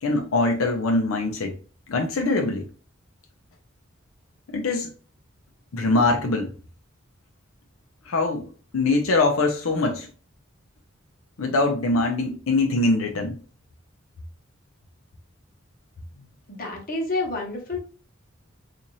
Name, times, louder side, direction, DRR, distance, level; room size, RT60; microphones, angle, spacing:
voice 1, 0.0-1.5 1.9-2.7 4.5-4.9 5.7-6.5 8.1-8.5 8.7-10.1 11.4-13.4, left 2 dB, 85° left, 0.6 m, -23 dB
voice 2, 16.5-17.8, left 2 dB, 45° left, 1.0 m, -29 dB
3.9 x 2.5 x 3.0 m
head